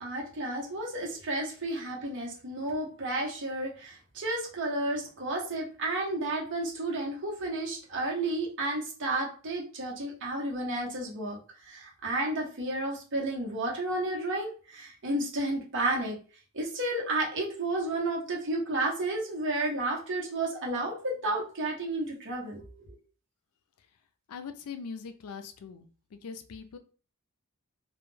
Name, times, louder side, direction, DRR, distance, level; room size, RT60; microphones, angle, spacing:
voice 1, 0.0-11.4 11.6-16.2 16.5-22.9, right 2 dB, 60° right, -2 dB, 0.8 m, -32 dB
voice 2, 24.3-25.9 26.2-26.8, left 5 dB, 85° left, 8 dB, 0.4 m, -41 dB
2.2 x 2.2 x 3.1 m, 0.38 s
head